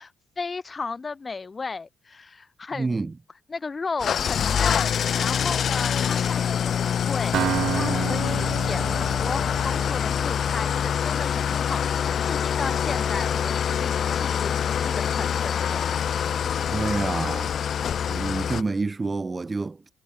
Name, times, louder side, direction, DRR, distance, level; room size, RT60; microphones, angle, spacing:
voice 1, 0.0-3.1 3.5-15.8, left 4 dB, 30° left, 1.0 m, -35 dB
voice 2, 2.7-3.1 16.7-17.6 18.1-19.8, right 3 dB, 25° right, 0.5 m, -28 dB
Engine starting / Idling, 4.0-18.6, left 8 dB, 55° left, 1.0 m, -25 dB
Acoustic guitar, 7.3-11.2, right 11 dB, 70° right, 1.5 m, -31 dB
cardioid pair, 90°, 0 cm